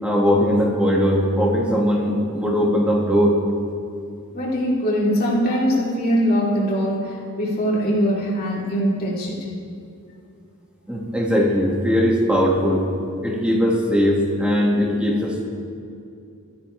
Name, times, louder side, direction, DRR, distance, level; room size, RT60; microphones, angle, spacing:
voice 1, 0.0-3.4 10.9-12.9 13.2-15.5, equal, 5° right, -3 dB, 2.0 m, -19 dB
voice 2, 4.3-9.4, equal, 45° left, -6 dB, 3.3 m, -22 dB
18.5 x 14.0 x 3.4 m, 2.5 s
head